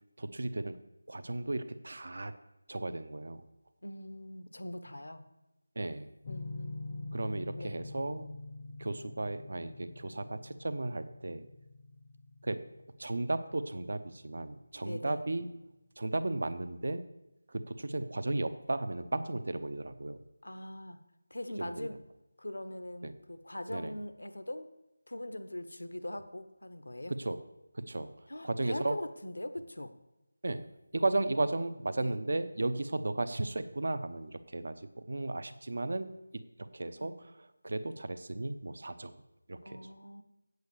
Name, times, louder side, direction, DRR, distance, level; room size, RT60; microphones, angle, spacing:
voice 1, 0.2-0.8 1.1-2.3 2.7-3.4 5.8-6.1 7.1-8.3 8.8-11.5 12.4-12.6 13.0-15.6 16.0-17.0 17.5-20.2 21.6-21.9 23.0-23.1 23.7-23.9 27.2-27.4 27.7-28.1 28.4-29.0 30.4-30.6 30.9-36.1 36.6-37.1 37.6-39.1 39.5-39.8, right 2 dB, 50° right, 11 dB, 0.8 m, -34 dB
voice 2, 3.8-5.3 6.3-7.2 7.6-7.8 14.8-15.2 20.4-21.0 21.3-22.0 22.4-24.7 25.1-27.1 28.3-29.9 31.0-31.4 31.9-32.2 37.0-37.2 39.6-40.2, left 1 dB, 70° left, 10 dB, 1.1 m, -42 dB
sound 1, 6.2-15.0, left 2 dB, 20° left, 0.8 m, -45 dB
8.2 x 8.1 x 6.9 m, 0.98 s
figure-of-eight pair, 165°, 0 cm